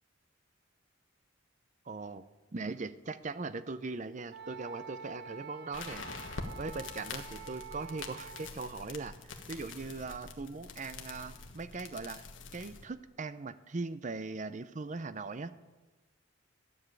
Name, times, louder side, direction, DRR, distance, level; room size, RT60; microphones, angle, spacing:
voice 1, 1.9-2.2 2.5-6.0 6.6-12.2 12.5-15.5, right 3 dB, 40° right, 13 dB, 0.6 m, -40 dB
Wind instrument woodwind instrument, 4.3-8.6, right 5 dB, 55° right, 1.0 m, -47 dB
sound 1, 5.7-12.9, left 4 dB, 75° left, 1.4 m, -45 dB
13.0 x 7.2 x 9.0 m, 1.2 s
head